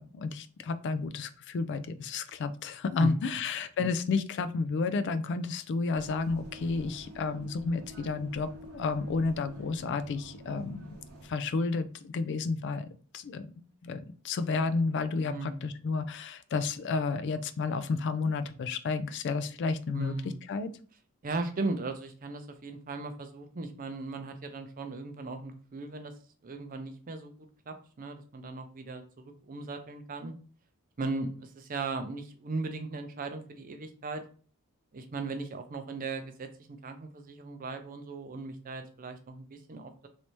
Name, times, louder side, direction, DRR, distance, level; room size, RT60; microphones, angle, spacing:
voice 1, 0.0-11.0 11.2-12.9 13.1-13.5 13.8-20.2 20.5-20.7, left 4 dB, 55° left, 13 dB, 0.3 m, -31 dB
sound 1, 5.9-11.3, equal, 75° right, 0.9 m, -48 dB
voice 2, 15.3-15.6 19.9-20.4 21.2-26.1 26.4-30.3 31.0-34.2 34.9-40.1, right 3 dB, 40° right, 7 dB, 0.5 m, -37 dB
3.2 x 2.7 x 3.0 m, 0.41 s
head